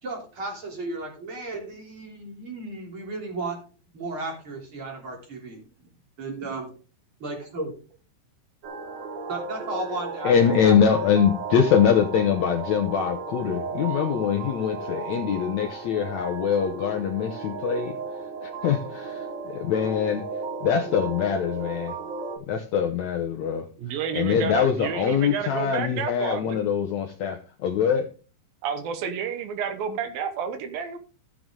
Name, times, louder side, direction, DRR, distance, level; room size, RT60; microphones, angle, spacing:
voice 1, 0.0-3.6 3.9-5.6 6.2-6.7 7.2-7.7 9.3-10.8, right 2 dB, 35° right, 3.9 m, -34 dB
sound 1, 8.6-22.4, right 4 dB, 55° right, 1.3 m, -35 dB
voice 2, 10.2-18.0 18.4-20.2 20.6-21.9 22.5-23.7 24.1-28.1, left 7 dB, 70° left, 1.7 m, -23 dB
voice 3, 23.8-26.6 28.6-31.0, right 6 dB, 75° right, 2.9 m, -30 dB
14.0 x 7.6 x 3.7 m
omnidirectional pair, 4.2 m